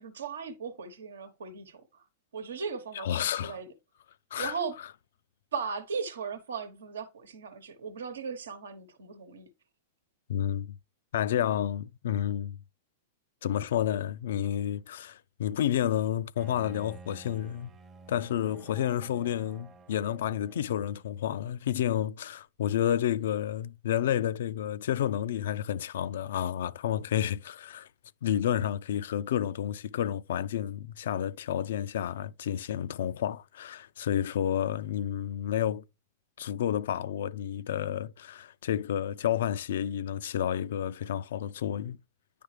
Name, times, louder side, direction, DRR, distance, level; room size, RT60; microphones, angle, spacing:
voice 1, 0.0-2.0 2.3-3.7 4.4-4.8 5.5-9.5, right 5 dB, 85° right, 1.0 m, -37 dB
voice 2, 3.0-3.6 4.3-4.5 10.3-10.8 11.1-12.6 13.4-17.7 18.1-27.9 28.2-35.8 36.4-42.0, left 10 dB, 70° left, 0.3 m, -30 dB
Bowed string instrument, 16.4-21.1, right 4 dB, 25° right, 0.7 m, -51 dB
9.4 x 5.1 x 3.2 m
hypercardioid pair, 120°, 0 cm